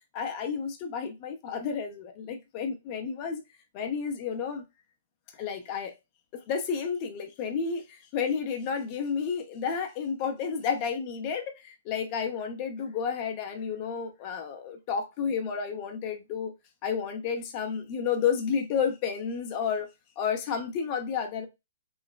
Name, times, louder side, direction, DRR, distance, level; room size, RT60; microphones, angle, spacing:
voice 1, 0.1-3.4 3.7-4.6 5.4-6.0 6.3-16.5 16.8-19.9 20.2-21.5, left 6 dB, 35° left, 0.6 m, -31 dB
3.2 x 2.0 x 2.3 m
hypercardioid pair, 135°, 0 cm